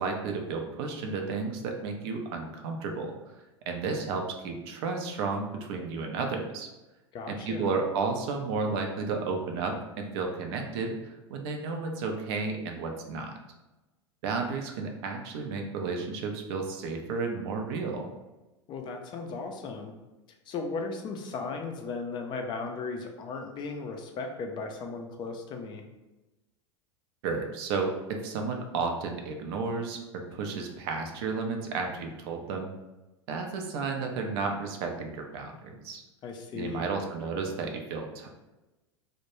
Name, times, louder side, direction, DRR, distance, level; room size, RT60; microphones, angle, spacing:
voice 1, 0.0-3.1 3.7-6.7 7.3-13.3 14.2-18.1 27.2-32.7 33.3-36.0 36.5-38.3, right 4 dB, 55° right, 3 dB, 0.5 m, -32 dB
voice 2, 7.1-7.8 18.7-19.9 20.5-25.8 36.2-36.8, left 4 dB, 30° left, 3 dB, 0.4 m, -36 dB
2.2 x 2.1 x 3.0 m, 1.0 s
hypercardioid pair, 90°, 15 cm